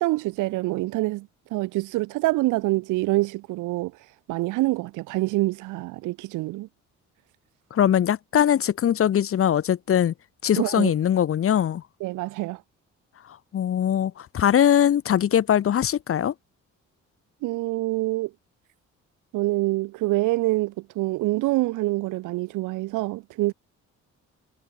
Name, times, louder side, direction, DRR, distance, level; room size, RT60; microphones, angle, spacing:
voice 1, 0.0-3.9 4.3-6.7 10.6-10.9 12.0-12.6 17.4-18.3 19.3-23.5, right 20 dB, 85° right, 0.5 m, -26 dB
voice 2, 7.7-10.1 10.4-11.8 13.5-16.3, left 10 dB, 45° left, 0.8 m, -21 dB
cardioid pair, 90°, 30 cm